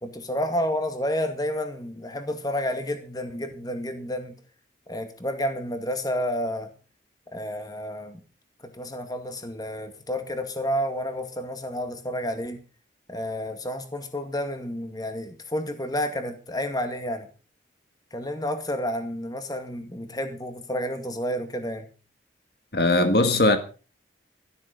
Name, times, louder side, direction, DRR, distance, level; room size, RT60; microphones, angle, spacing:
voice 1, 0.0-4.4 4.9-6.7 7.3-8.2 8.6-12.6 13.1-17.3 18.1-21.9, equal, 20° left, 2.1 m, -30 dB
voice 2, 22.7-23.6, left 2 dB, 55° left, 1.7 m, -19 dB
13.5 x 12.5 x 5.3 m
head